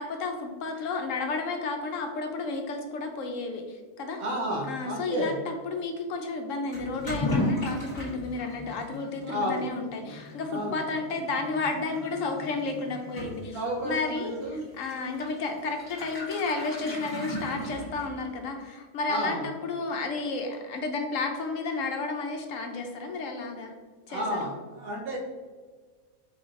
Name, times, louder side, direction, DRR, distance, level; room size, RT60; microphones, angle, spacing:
voice 1, 0.0-4.2 4.7-23.7 24.1-24.5, left 3 dB, 70° left, 4 dB, 0.9 m, -32 dB
voice 2, 4.2-5.3 9.2-9.7 10.5-10.8 13.5-14.6 19.1-19.5 24.1-25.2, equal, 85° right, -3 dB, 1.4 m, -31 dB
Toilet flush / Liquid, 6.7-18.4, left 1 dB, 15° left, 1.2 m, -36 dB
4.7 x 4.1 x 2.5 m, 1.5 s
omnidirectional pair, 1.5 m